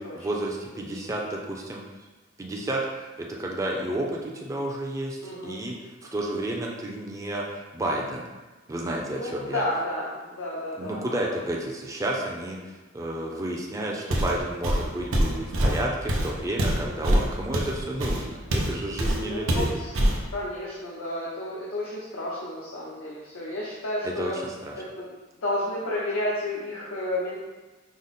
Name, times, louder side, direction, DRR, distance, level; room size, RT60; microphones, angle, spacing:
voice 1, 0.0-1.8 2.4-2.8 3.2-5.2 5.4-5.7 6.1-8.3 8.7-9.6 10.8-19.7 24.0-24.7, right 1 dB, 15° right, -2 dB, 0.4 m, -31 dB
voice 2, 5.2-5.6 9.1-11.3 16.8-17.2 19.2-20.0 20.3-24.4 24.8-25.1 25.4-27.4, left 1 dB, 90° left, -6 dB, 0.7 m, -32 dB
Walk footsteps, 14.1-14.4 14.6-18.7 19.0-19.2 19.5-20.2, equal, 85° right, 0.7 m, -24 dB
5.0 x 2.0 x 4.1 m, 1.2 s
head